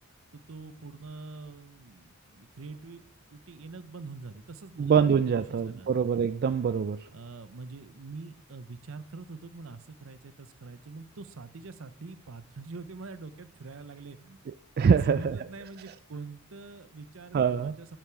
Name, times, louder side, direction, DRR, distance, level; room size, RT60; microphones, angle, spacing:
voice 1, 0.3-3.0 3.3-4.9 5.4-5.9 7.1-14.4 14.8-18.0, right 3 dB, 70° right, 0.7 m, -44 dB
voice 2, 4.8-7.1 14.8-15.4 17.3-17.7, right 6 dB, 50° right, 0.3 m, -24 dB
8.9 x 8.5 x 4.6 m
head